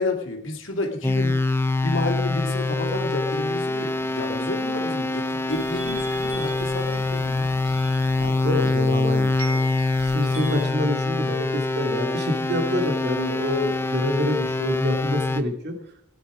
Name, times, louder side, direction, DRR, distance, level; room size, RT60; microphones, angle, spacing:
voice 1, 0.0-1.4 1.8-7.5, left 2 dB, 75° left, 1 dB, 2.5 m, -30 dB
sound 1, 1.0-15.4, left 2 dB, 10° left, 0.8 m, -25 dB
sound 2, 5.5-10.6, right 1 dB, 25° right, 4.4 m, -39 dB
voice 2, 8.2-9.6 9.9-15.8, left 1 dB, 55° right, 3 dB, 2.6 m, -27 dB
17.0 x 9.3 x 5.0 m, 0.76 s
head